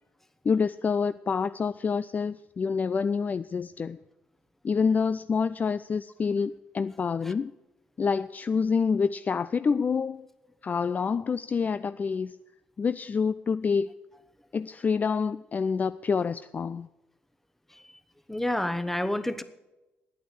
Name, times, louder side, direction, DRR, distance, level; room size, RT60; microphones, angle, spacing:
voice 1, 0.4-4.0 4.6-7.5 8.0-10.2 10.6-12.4 12.8-13.9 14.5-16.9, left 5 dB, 30° left, 0.3 m, -27 dB
voice 2, 18.3-19.4, left 1 dB, 5° left, 1.0 m, -28 dB
11.0 x 9.4 x 7.7 m
figure-of-eight pair, 45°, 5 cm